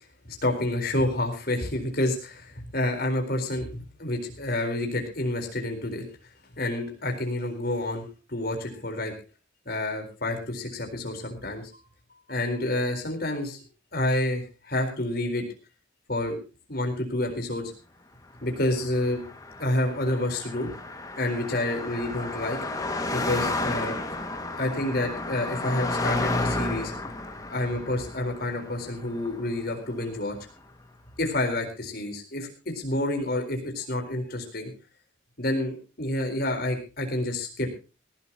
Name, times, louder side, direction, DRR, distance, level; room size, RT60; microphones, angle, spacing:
voice 1, 0.2-6.0 6.6-8.0 8.3-9.1 9.7-11.7 12.3-13.6 13.9-15.4 16.1-16.4 16.7-17.7 18.4-19.2 19.6-20.7 21.2-22.6 23.1-24.0 24.6-26.9 27.5-30.4 31.2-34.7 35.4-37.7, left 1 dB, 50° left, 4 dB, 4.2 m, -28 dB
Car passing by, 18.6-30.1, left 2 dB, 20° left, 2.0 m, -32 dB
19.5 x 15.5 x 2.9 m, 0.32 s
head